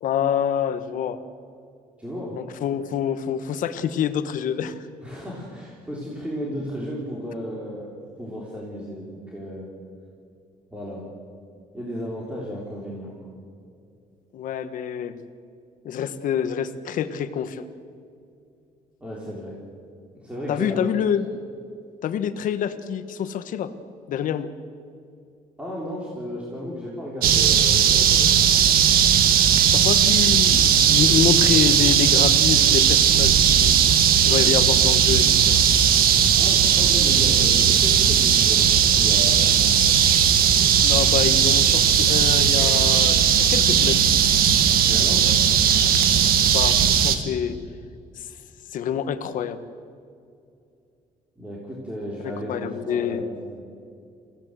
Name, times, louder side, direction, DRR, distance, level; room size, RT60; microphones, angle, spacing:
voice 1, 0.0-1.2 2.3-4.9 14.3-15.2 15.8-17.7 20.5-21.3 22.0-23.7 24.1-24.5 29.7-33.7 34.2-35.6 40.8-44.0 46.4-47.6 48.2-48.3 48.7-49.6 52.2-53.2, left 8 dB, 65° left, 10 dB, 1.3 m, -26 dB
voice 2, 2.0-2.4 5.0-9.7 10.7-11.1 11.7-13.2 19.0-19.6 20.1-20.8 25.6-28.3 36.4-40.2 44.8-45.3 51.4-53.6, equal, 10° right, -5 dB, 3.5 m, -34 dB
sound 1, 27.2-47.2, right 8 dB, 85° right, 1.6 m, -17 dB
28.5 x 16.0 x 7.7 m, 2.4 s
cardioid pair, 175°, 15 cm